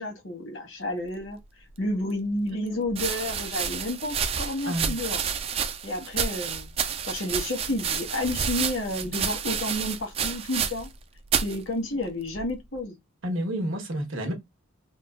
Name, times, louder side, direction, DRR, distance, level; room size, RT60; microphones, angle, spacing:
voice 1, 0.0-1.4 1.8-5.2 5.8-6.7 7.1-10.9 11.4-12.9, left 1 dB, 70° left, 1.4 m, -30 dB
sound 1, 1.8-1.9 2.9-11.0 11.3-11.6 12.3-12.7, right 7 dB, 30° right, 0.3 m, -30 dB
voice 2, 4.7-5.0 13.2-14.3, right 1 dB, 75° right, 1.2 m, -30 dB
3.7 x 2.2 x 2.4 m
head